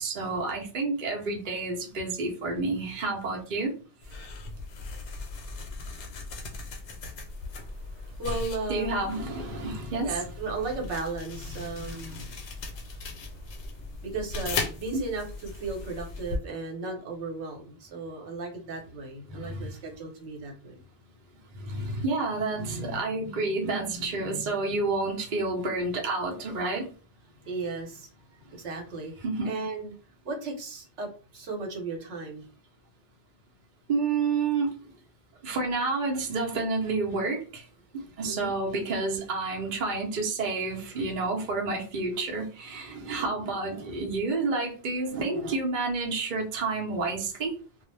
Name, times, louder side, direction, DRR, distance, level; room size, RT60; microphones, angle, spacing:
voice 1, 0.0-3.7 8.7-10.2 11.5-12.3 14.9-15.0 19.3-19.7 21.5-26.9 29.2-29.5 33.9-34.7 35.4-37.7 37.9-47.6, right 3 dB, 50° right, 0.7 m, -30 dB
sound 1, 4.0-16.4, left 3 dB, 80° left, 1.0 m, -38 dB
voice 2, 7.4-9.0 10.0-12.2 12.7-13.6 14.0-20.8 27.4-28.1 28.5-29.1 29.4-29.9 30.2-32.5 38.2-38.5, right 3 dB, 75° right, 1.0 m, -36 dB
2.3 x 2.0 x 3.1 m
omnidirectional pair, 1.2 m